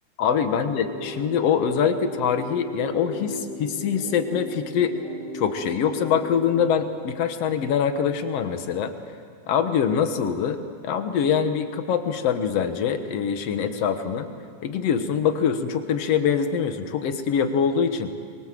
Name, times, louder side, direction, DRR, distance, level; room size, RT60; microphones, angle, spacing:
voice 1, 0.2-5.0 5.3-8.9 9.5-14.3 14.6-18.1, left 7 dB, 60° left, 8 dB, 2.1 m, -24 dB
sound 1, 0.6-6.6, left 1 dB, 30° left, 3.6 m, -36 dB
23.5 x 23.0 x 7.7 m, 2.2 s
omnidirectional pair, 3.6 m